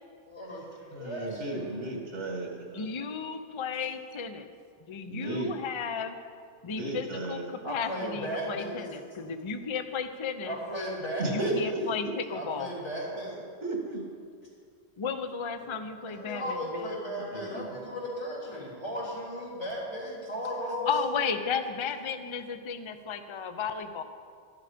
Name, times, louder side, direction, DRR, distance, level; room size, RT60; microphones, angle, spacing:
voice 1, 0.3-1.8 7.6-8.9 9.2-9.3 10.5-11.5 12.3-13.4 16.1-21.0, equal, 85° left, -6 dB, 4.1 m, -36 dB
voice 2, 0.9-2.9 5.1-5.5 6.7-7.4 11.2-11.8 13.6-14.0 15.6-15.8 17.3-17.6, right 2 dB, 85° right, 0 dB, 2.4 m, -34 dB
voice 3, 2.7-4.5 4.9-6.2 6.6-10.6 11.3-12.7 15.0-16.9 20.9-24.0, left 6 dB, 35° left, 8 dB, 0.5 m, -34 dB
13.0 x 11.5 x 5.1 m, 2.1 s
omnidirectional pair, 1.2 m